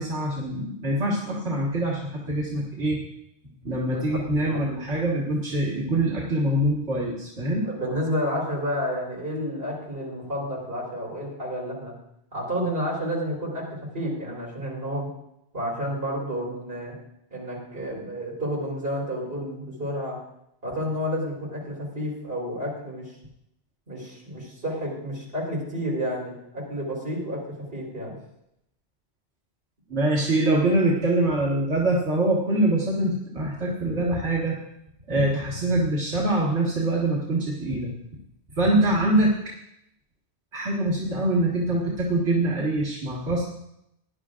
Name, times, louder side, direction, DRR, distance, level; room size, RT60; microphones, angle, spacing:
voice 1, 0.0-3.0 3.6-7.7 29.9-34.6 35.1-37.9 38.6-39.3 40.5-43.4, right 1 dB, 90° right, -5 dB, 2.0 m, -24 dB
voice 2, 7.6-11.9 12.3-15.1 15.5-16.9 17.3-20.2 20.6-23.1 23.9-27.5 27.7-28.2, equal, 60° right, -4 dB, 4.2 m, -30 dB
18.5 x 11.0 x 2.5 m, 0.80 s
omnidirectional pair, 1.1 m